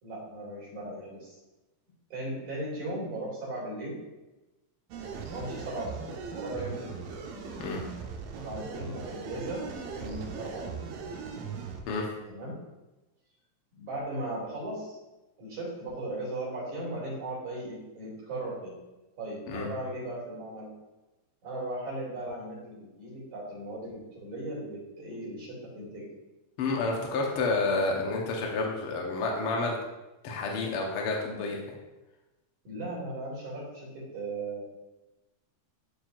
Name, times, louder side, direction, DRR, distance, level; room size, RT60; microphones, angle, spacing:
voice 1, 0.0-1.4 2.1-4.0 5.3-7.0 8.3-9.6 10.0-10.8 12.3-12.6 13.7-15.0 15.4-18.8 19.2-20.7 21.4-26.1 32.6-34.8, right 1 dB, 55° right, -7 dB, 3.9 m, -37 dB
sound 1, 4.9-11.8, right 5 dB, 80° right, 2.6 m, -39 dB
voice 2, 26.6-29.8 30.2-31.6, left 3 dB, 80° left, 0 dB, 1.2 m, -29 dB
12.0 x 4.4 x 2.5 m, 1.1 s
omnidirectional pair, 4.1 m